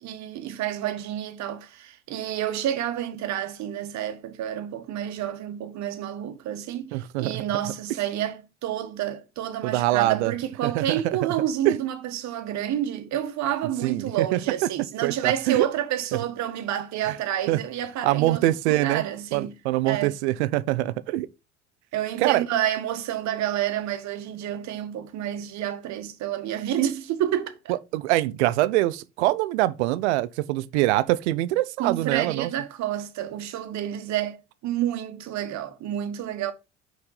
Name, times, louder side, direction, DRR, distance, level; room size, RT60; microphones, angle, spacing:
voice 1, 0.0-19.5 19.8-20.1 21.9-27.6 31.8-36.5, right 11 dB, 50° right, 1.6 m, -29 dB
voice 2, 6.9-7.4 9.6-10.3 10.6-11.2 11.7-11.8 13.8-14.4 15.0-15.7 17.1-17.2 17.5-17.6 18.0-19.0 19.3-21.3 22.2-22.4 27.7-32.5, right 16 dB, 65° right, 0.7 m, -24 dB
6.0 x 5.8 x 4.0 m
figure-of-eight pair, 65°, 35 cm